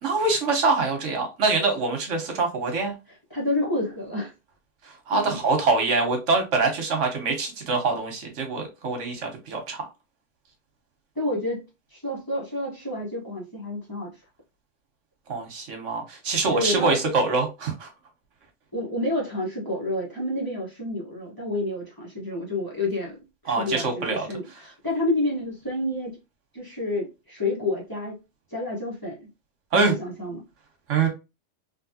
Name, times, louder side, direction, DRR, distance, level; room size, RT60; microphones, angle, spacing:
voice 1, 0.0-2.9 5.1-9.8 15.3-17.9 23.5-24.3 29.7-29.9 30.9-31.1, right 3 dB, 75° right, 1.2 m, -24 dB
voice 2, 3.3-4.3 5.1-5.4 11.1-11.6 11.9-14.1 16.5-16.9 18.7-26.2 26.5-28.2 28.5-29.3 29.7-30.4, left 1 dB, 20° left, 1.1 m, -29 dB
3.3 x 2.6 x 2.7 m
omnidirectional pair, 1.3 m